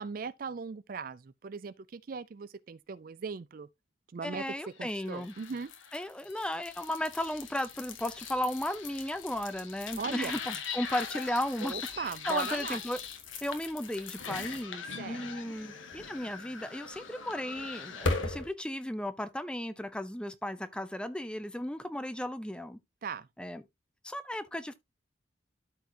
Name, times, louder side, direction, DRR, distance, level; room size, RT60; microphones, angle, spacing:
voice 1, 0.0-3.7 4.1-4.4 4.8-5.7 10.0-10.3 11.6-12.8 15.0-15.3 23.0-23.3, right 5 dB, 45° right, 0.4 m, -38 dB
voice 2, 4.2-5.3 5.9-11.7 12.0-13.0 13.4-22.8 23.4-23.6 24.0-24.7, left 1 dB, 5° left, 0.5 m, -35 dB
sound 1, 4.8-18.5, left 4 dB, 85° left, 1.6 m, -39 dB
13.0 x 4.6 x 2.8 m
head